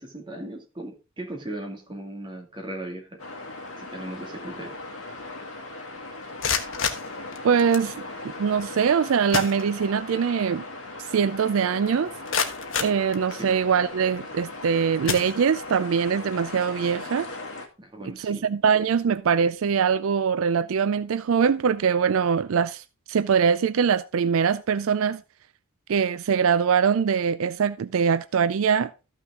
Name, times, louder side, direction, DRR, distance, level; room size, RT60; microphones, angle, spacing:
voice 1, 0.0-3.2 3.8-4.7 13.4-13.5 17.8-18.5, right 1 dB, 20° right, 2.2 m, -37 dB
sound 1, 3.2-17.7, left 2 dB, 80° left, 2.2 m, -38 dB
sound 2, 6.2-7.9 8.9-9.0 9.3-10.2 10.6-10.7 11.2-11.3 11.9-13.7 14.4-14.6 15.0-15.9, left 6 dB, 60° left, 1.3 m, -30 dB
voice 2, 7.4-8.0 8.2-10.6 11.0-12.1 12.8-17.3 18.0-25.2 25.9-28.9, right 6 dB, 70° right, 0.4 m, -23 dB
13.5 x 6.1 x 3.6 m
head